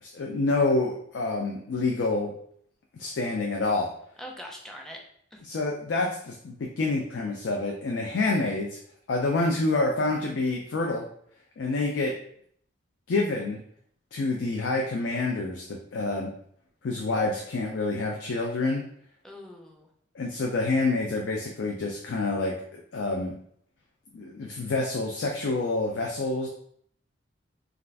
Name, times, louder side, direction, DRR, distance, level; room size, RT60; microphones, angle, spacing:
voice 1, 0.0-2.3 2.9-3.9 5.4-8.8 9.1-11.0 11.6-12.1 13.1-13.6 14.1-15.6 15.9-16.3 16.8-18.8 20.1-23.3 24.1-26.5, left 3 dB, 80° left, 0 dB, 0.4 m, -27 dB
voice 2, 4.2-5.0 5.3-5.4 19.2-19.9, equal, 5° left, 0 dB, 0.4 m, -42 dB
2.4 x 2.4 x 3.3 m, 0.65 s
head